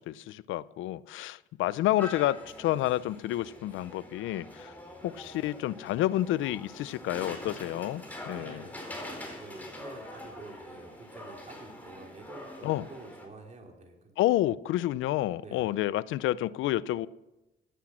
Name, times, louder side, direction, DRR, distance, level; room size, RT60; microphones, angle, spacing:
voice 1, 0.0-4.7 5.0-8.6 12.6-12.8 14.2-17.1, left 14 dB, 85° left, 20 dB, 0.5 m, -29 dB
sound 1, 2.0-13.3, left 1 dB, 10° left, 4.4 m, -44 dB
voice 2, 8.3-9.0 9.4-14.1 15.4-15.7, right 2 dB, 35° right, 1 dB, 3.2 m, -48 dB
16.0 x 10.0 x 6.2 m, 1.0 s
cardioid pair, 90°, 20 cm